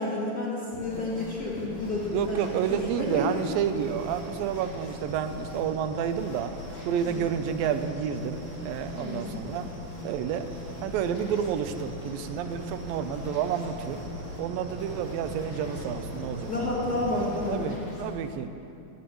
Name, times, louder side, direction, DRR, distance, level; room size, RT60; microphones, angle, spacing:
voice 1, 0.0-3.3 7.0-7.2 9.0-9.4 16.5-17.8, left 1 dB, 30° left, -7 dB, 2.4 m, -30 dB
sound 1, 0.7-18.2, left 2 dB, 60° left, 3.9 m, -42 dB
sound 2, 1.8-17.5, right 1 dB, 50° right, 1.1 m, -43 dB
voice 2, 2.1-6.5 6.9-9.7 10.0-10.5 10.8-14.0 14.4-16.7 17.5-18.5, right 8 dB, 85° right, 9 dB, 2.5 m, -30 dB
19.0 x 17.0 x 3.1 m, 2.7 s
omnidirectional pair, 4.0 m